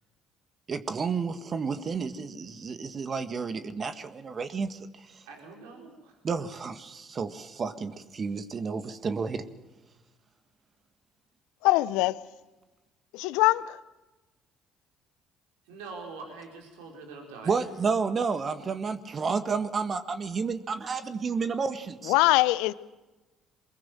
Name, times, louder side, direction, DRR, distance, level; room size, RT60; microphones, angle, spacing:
voice 1, 0.7-5.2 6.2-9.5 17.5-22.1, right 5 dB, 40° right, 1.7 m, -31 dB
voice 2, 5.3-6.2 15.6-17.6, right 4 dB, 80° right, 4.7 m, -44 dB
voice 3, 11.6-12.2 13.1-13.8 22.0-22.7, left 19 dB, 75° left, 0.7 m, -22 dB
23.5 x 21.5 x 7.6 m
hypercardioid pair, 55°, 0 cm